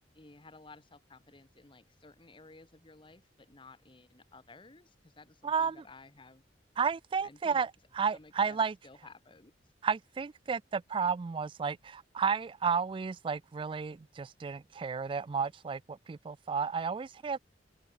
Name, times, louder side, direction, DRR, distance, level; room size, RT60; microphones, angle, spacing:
voice 1, 0.1-6.4 7.2-7.6 8.1-9.5, left 3 dB, 30° left, 1.3 m, -55 dB
voice 2, 5.4-5.8 6.8-8.8 9.8-17.4, right 6 dB, 30° right, 0.3 m, -32 dB
open air
head